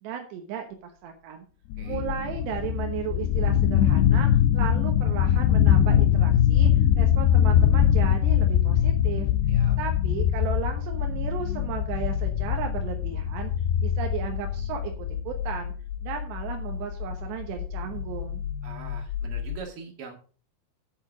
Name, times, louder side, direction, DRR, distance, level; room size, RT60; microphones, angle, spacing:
voice 1, 0.0-1.5 1.8-9.3 9.8-13.5 13.8-15.7 16.0-18.4, right 8 dB, 75° right, 4 dB, 3.1 m, -35 dB
sound 1, 1.7-19.6, left 10 dB, 80° left, 2.5 m, -23 dB
voice 2, 18.6-20.1, right 4 dB, 45° right, 2 dB, 2.0 m, -42 dB
8.9 x 7.6 x 4.8 m, 0.39 s
omnidirectional pair, 5.3 m